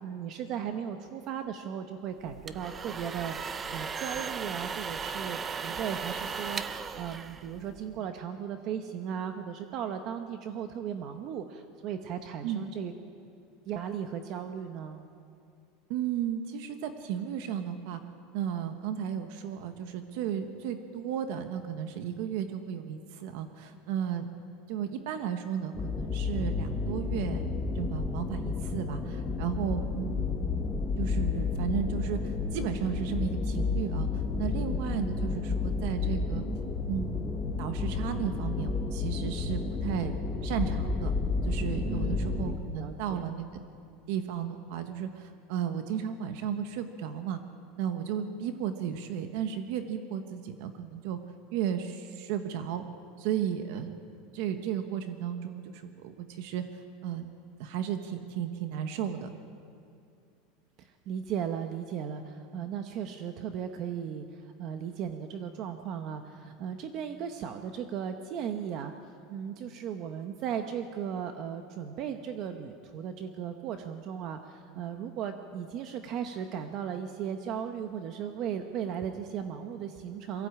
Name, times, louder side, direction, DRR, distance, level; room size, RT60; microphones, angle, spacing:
voice 1, 0.0-12.9 13.7-15.1 41.8-43.4 60.8-68.9 69.3-80.5, right 8 dB, 35° right, 7 dB, 0.9 m, -36 dB
sound 1, 2.2-8.0, right 5 dB, 15° right, 0.6 m, -37 dB
voice 2, 15.9-18.0 18.3-24.3 24.7-27.4 27.7-30.4 31.0-36.4 36.9-40.1 40.4-41.1 41.4-43.6 44.1-47.4 47.8-51.2 51.5-52.8 53.2-54.0 54.3-57.3 57.6-59.3, right 9 dB, 55° right, 8 dB, 1.2 m, -34 dB
sound 2, 25.7-42.6, left 4 dB, 15° left, 1.4 m, -31 dB
23.0 x 15.5 x 8.7 m, 2.4 s
supercardioid pair, 175°, 0 cm